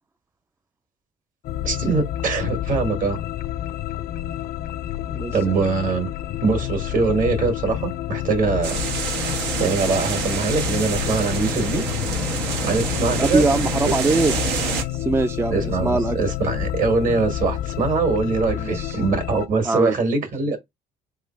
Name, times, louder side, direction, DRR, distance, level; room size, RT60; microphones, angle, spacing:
sound 1, 1.4-19.5, left 12 dB, 65° left, 0.5 m, -29 dB
voice 1, 1.6-3.2 5.3-6.1 6.4-8.8 9.6-11.8 12.6-13.5 13.8-14.0 15.5-20.6, right 4 dB, 55° right, 1.8 m, -23 dB
voice 2, 5.1-5.5 13.2-14.3 14.9-16.3 18.5-19.0 19.6-20.0, right 3 dB, 15° right, 0.3 m, -22 dB
sound 2, 8.6-14.8, right 5 dB, 90° right, 1.3 m, -27 dB
3.6 x 3.1 x 4.5 m
cardioid pair, 110°, 17 cm